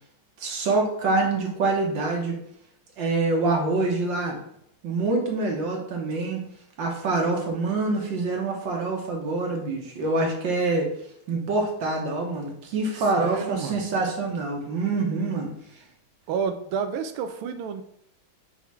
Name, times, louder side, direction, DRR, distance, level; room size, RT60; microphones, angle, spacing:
voice 1, 0.4-2.4 3.0-4.4 4.8-6.4 6.8-10.9 11.3-15.5, right 3 dB, 65° right, 0 dB, 1.8 m, -25 dB
voice 2, 13.0-13.8 16.3-17.8, right 6 dB, 90° right, 8 dB, 1.5 m, -30 dB
5.9 x 3.5 x 4.7 m, 0.71 s
omnidirectional pair, 2.3 m